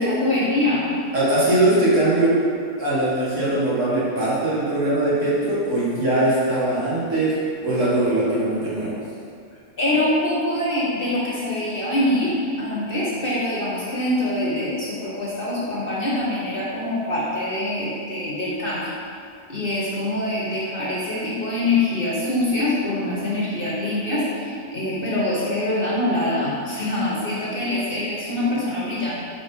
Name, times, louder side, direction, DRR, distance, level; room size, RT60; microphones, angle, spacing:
voice 1, 0.0-0.9 9.8-18.9 19.5-29.2, left 1 dB, 45° left, -6 dB, 1.1 m, -24 dB
voice 2, 1.1-2.4 2.8-9.0, right 1 dB, 55° right, -8 dB, 1.9 m, -21 dB
5.1 x 3.9 x 5.4 m, 2.4 s
omnidirectional pair, 1.5 m